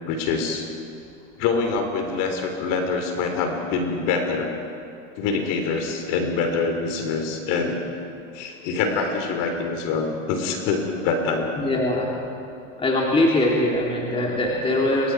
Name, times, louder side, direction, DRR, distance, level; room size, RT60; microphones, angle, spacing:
voice 1, 0.0-0.7 1.4-4.5 5.2-7.8 8.3-11.5, left 4 dB, 50° left, 4 dB, 3.5 m, -25 dB
voice 2, 11.6-12.2 12.8-15.1, left 1 dB, 15° left, -3 dB, 3.3 m, -22 dB
29.5 x 24.0 x 4.8 m, 2.5 s
hypercardioid pair, 105°, 41 cm